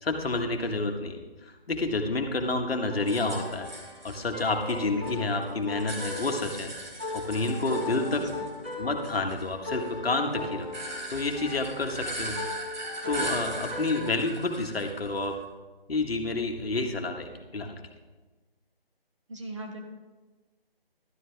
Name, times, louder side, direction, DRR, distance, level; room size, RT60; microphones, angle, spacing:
voice 1, 0.0-3.7 4.0-6.7 7.1-8.3 8.8-10.7 11.1-12.4 13.0-15.4 15.9-17.8, left 2 dB, 80° left, 4 dB, 1.6 m, -29 dB
sound 1, 2.8-14.1, left 3 dB, 10° right, 0.8 m, -38 dB
sound 2, 3.1-5.1 5.4-8.7 9.0-15.4, right 1 dB, 50° right, 2.3 m, -39 dB
voice 2, 8.1-8.5 19.3-19.8, right 2 dB, 30° right, 3 dB, 1.2 m, -40 dB
12.0 x 9.6 x 3.5 m, 1.2 s
figure-of-eight pair, 175°, 30 cm